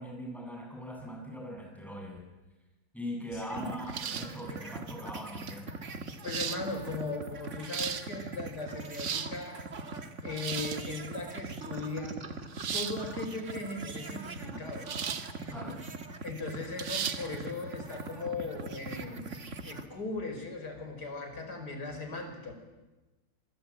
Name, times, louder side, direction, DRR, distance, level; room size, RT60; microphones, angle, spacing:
voice 1, 0.0-2.2 2.9-5.7 15.5-15.8, equal, ahead, 0 dB, 7.8 m, -41 dB
voice 2, 3.3-3.6 6.2-9.6 10.2-12.2 12.7-14.9 15.5-15.8 16.2-19.3 19.6-22.5, left 3 dB, 50° left, 5 dB, 5.7 m, -38 dB
sound 1, 3.4-19.9, right 3 dB, 35° right, 1.9 m, -42 dB
sound 2, 3.9-4.4 5.5-5.6 6.2-6.6 7.4-8.0 8.8-9.3 10.3-10.8 12.5-13.0 14.9-15.3 15.7-15.8 16.8-17.2, right 7 dB, 60° right, 2.0 m, -35 dB
26.5 x 23.0 x 9.0 m, 1.1 s
omnidirectional pair, 2.3 m